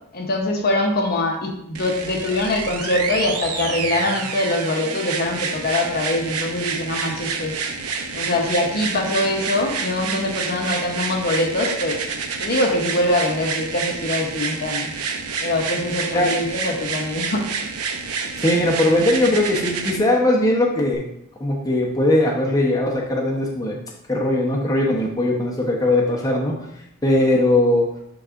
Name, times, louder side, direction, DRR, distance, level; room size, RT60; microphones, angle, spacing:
voice 1, 0.1-7.5 8.1-12.0 12.4-14.9 15.4-17.5, left 1 dB, 45° left, 1 dB, 0.9 m, -23 dB
sound 1, 1.7-20.0 20.9-21.0, right 5 dB, 85° right, 0.7 m, -28 dB
voice 2, 18.4-21.0 21.4-23.8 24.1-26.7 27.0-27.9, left 1 dB, 15° left, -3 dB, 0.9 m, -19 dB
11.0 x 4.0 x 2.5 m, 0.76 s
head